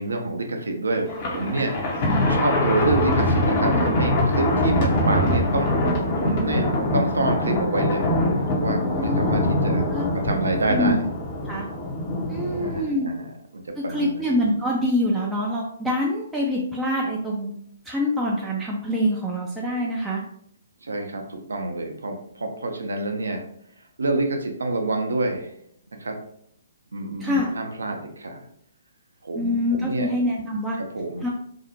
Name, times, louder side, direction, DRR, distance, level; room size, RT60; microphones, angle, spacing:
voice 1, 0.0-1.8 2.3-5.7 6.2-8.1 8.5-9.9 10.1-11.0 12.5-14.2 20.8-23.4 24.0-25.5 26.0-26.2 26.9-28.5 29.2-30.1 30.8-31.2, right 2 dB, 70° right, 4 dB, 0.5 m, -27 dB
Thunder, 1.1-12.8, left 1 dB, 40° left, 0.6 m, -23 dB
voice 2, 8.8-9.5 9.9-10.1 10.7-11.0 11.4-11.7 12.3-13.1 13.8-17.5 17.8-20.2 27.2-27.5 29.3-30.8 31.2-31.3, left 1 dB, 5° right, -4 dB, 0.3 m, -25 dB
2.6 x 2.0 x 2.7 m, 0.69 s
figure-of-eight pair, 130°, 0 cm